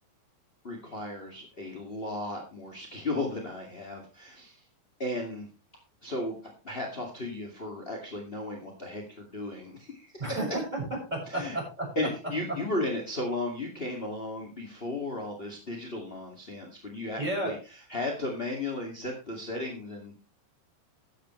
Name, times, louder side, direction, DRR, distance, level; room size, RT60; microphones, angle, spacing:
voice 1, 0.6-4.6 5.0-5.5 6.0-6.4 6.6-10.2 11.3-11.6 11.9-20.2, left 2 dB, 25° left, 1 dB, 1.2 m, -35 dB
voice 2, 10.2-10.8 11.1-11.9 17.2-17.5, right 2 dB, 10° right, -1 dB, 5.8 m, -32 dB
13.5 x 10.5 x 3.2 m, 0.32 s
omnidirectional pair, 4.9 m